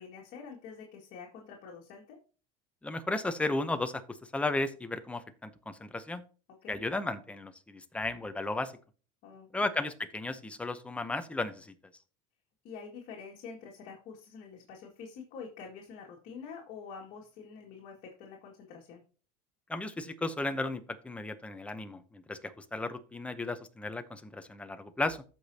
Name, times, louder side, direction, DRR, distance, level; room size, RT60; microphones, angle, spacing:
voice 1, 0.0-2.2 6.6-6.8 9.2-9.5 12.6-19.0, left 5 dB, 55° left, -1 dB, 2.1 m, -47 dB
voice 2, 2.8-6.2 6.7-8.7 9.5-11.7 19.7-25.2, left 2 dB, 5° left, 9 dB, 0.7 m, -34 dB
14.0 x 5.2 x 2.8 m, 0.37 s
cardioid pair, 140°, 18 cm